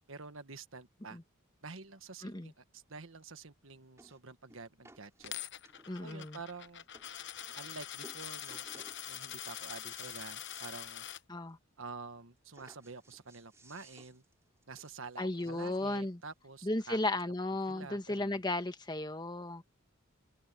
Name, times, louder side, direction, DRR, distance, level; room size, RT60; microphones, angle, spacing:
voice 1, 0.1-1.2 1.6-5.5 6.0-6.8 7.5-11.1 11.8-14.2 14.7-17.0 17.7-18.4, right 4 dB, 65° right, 1.5 m, -48 dB
voice 2, 2.2-2.5 5.9-6.4 11.3-11.6 15.2-16.2 16.6-19.6, left 2 dB, 20° left, 1.3 m, -35 dB
sound 1, 3.2-3.3 4.0-4.2 4.5-6.1 6.6-6.7 6.9-7.1 7.5-7.8 8.0-9.0 9.4-10.8 11.1-11.2 11.5-11.6 12.5-16.0 16.8-16.9, right 2 dB, 15° right, 2.8 m, -59 dB
Coin (dropping), 5.2-11.2, left 11 dB, 55° left, 0.9 m, -44 dB
head